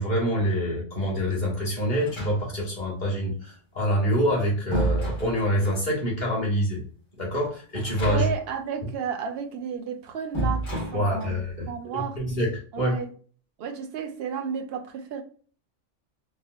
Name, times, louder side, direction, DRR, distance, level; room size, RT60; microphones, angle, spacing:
voice 1, 0.0-6.8 7.2-8.3 10.9-13.0, equal, 40° left, 1.5 m, -26 dB
sound 1, 1.9-2.8 4.0-5.9 7.7-8.6 8.8-8.9 10.3-11.5, right 1 dB, 80° left, 1.9 m, -30 dB
voice 2, 8.1-10.7 10.9-11.4 11.7-12.2 12.7-13.1 13.6-15.2, right 7 dB, 60° right, 0.8 m, -32 dB
4.2 x 2.2 x 2.2 m
omnidirectional pair, 1.3 m